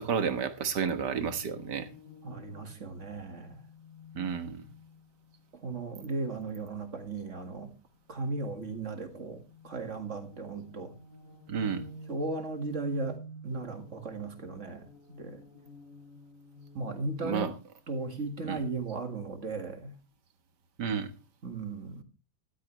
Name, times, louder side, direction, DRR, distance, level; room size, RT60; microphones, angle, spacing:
voice 1, 0.0-1.9 4.2-4.6 11.5-11.8 17.2-17.5 18.5-18.6 20.8-21.1, right 6 dB, 85° right, 9 dB, 1.9 m, -31 dB
Deep Metal Hull Scrape, 1.2-5.3 8.4-17.6, equal, 50° left, 2.5 m, -50 dB
voice 2, 2.2-3.6 5.5-7.7 8.1-10.9 12.1-15.4 16.7-17.5 17.9-20.0 21.4-22.0, right 3 dB, 45° right, 6 dB, 2.2 m, -36 dB
13.0 x 12.5 x 3.2 m, 0.31 s
omnidirectional pair, 1.8 m